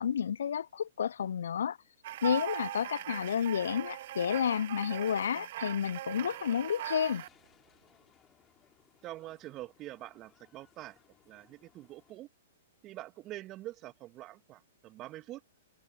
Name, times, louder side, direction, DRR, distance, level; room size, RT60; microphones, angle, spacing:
voice 1, 0.0-1.8 2.2-7.2, left 8 dB, 70° left, 0.3 m, -31 dB
sound 1, 2.0-7.3, right 14 dB, 55° right, 0.4 m, -40 dB
sound 2, 6.3-12.1, left 9 dB, 20° left, 2.7 m, -66 dB
voice 2, 9.0-11.0 11.3-12.3 12.8-15.4, right 16 dB, 30° right, 1.6 m, -45 dB
figure-of-eight pair, 115°, 0 cm